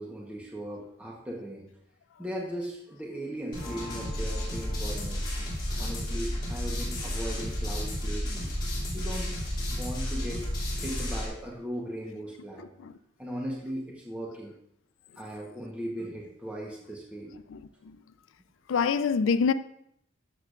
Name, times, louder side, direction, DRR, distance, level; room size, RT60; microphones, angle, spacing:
voice 1, 0.0-1.7 2.2-5.4 5.8-9.4 9.7-10.4 10.8-12.7 13.2-14.5 15.2-17.3, equal, 5° right, 1.0 m, -38 dB
sound 1, 3.5-11.3, equal, 25° left, 2.9 m, -32 dB
voice 2, 12.6-12.9 17.5-18.0 18.7-19.5, left 6 dB, 80° left, 0.4 m, -27 dB
13.0 x 6.6 x 2.5 m
head